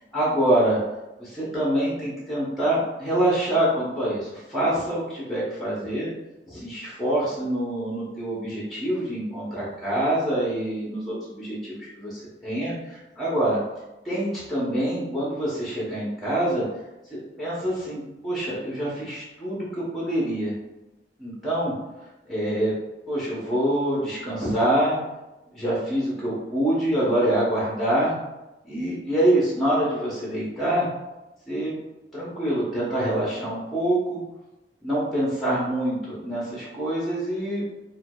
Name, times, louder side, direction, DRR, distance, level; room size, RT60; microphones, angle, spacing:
voice 1, 0.1-0.8 1.2-6.1 6.5-13.6 14.0-16.6 17.4-20.5 21.2-21.7 22.3-22.7 23.1-25.0 25.5-28.2 28.6-30.9 31.5-31.7 32.1-34.2 34.8-37.6, right 1 dB, ahead, -7 dB, 0.8 m, -25 dB
4.5 x 2.2 x 2.3 m, 0.99 s
head